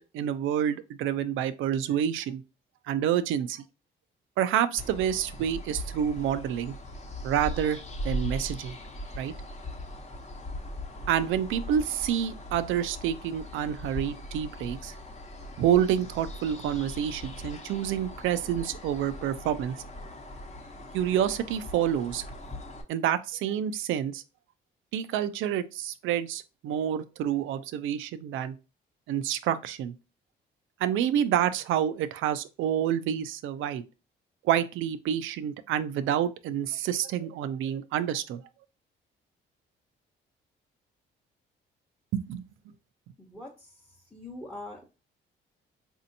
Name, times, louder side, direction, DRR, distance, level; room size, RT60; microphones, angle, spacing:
voice 1, 0.0-2.4 2.9-3.6 4.4-6.7 7.2-7.8 8.0-8.8 9.1-9.3 11.1-14.9 15.6-19.8 20.9-22.2 22.9-24.2 24.9-28.5 29.1-29.9 30.8-33.8 34.4-38.4 42.1-42.4, right 10 dB, 85° right, 0.4 m, -28 dB
sound 1, 4.8-22.8, left 1 dB, 35° left, 0.9 m, -40 dB
voice 2, 43.2-43.5 44.1-44.8, left 2 dB, 5° left, 0.8 m, -42 dB
4.2 x 2.7 x 2.7 m
cardioid pair, 90°, 20 cm